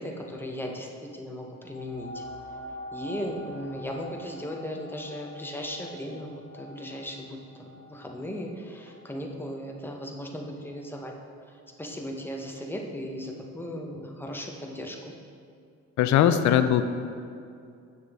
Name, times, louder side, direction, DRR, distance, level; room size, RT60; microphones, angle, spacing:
voice 1, 0.0-2.2 2.9-11.1 11.5-15.1, equal, 5° left, 1 dB, 0.8 m, -37 dB
sound 1, 1.7-10.9 11.5-11.6, equal, 35° right, 1.7 m, -45 dB
voice 2, 16.0-16.9, left 10 dB, 70° left, 10 dB, 0.5 m, -20 dB
7.3 x 6.3 x 3.5 m, 2.4 s
cardioid pair, 90°, 30 cm